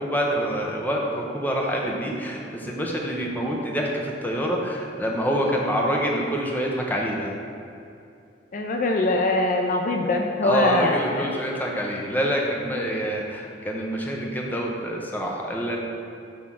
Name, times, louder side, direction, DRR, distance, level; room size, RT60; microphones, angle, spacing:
voice 1, 0.0-7.3 10.4-15.8, equal, 10° left, -1 dB, 0.8 m, -26 dB
voice 2, 8.5-11.3, left 2 dB, 50° left, 2 dB, 0.4 m, -23 dB
6.2 x 3.6 x 5.7 m, 2.5 s
head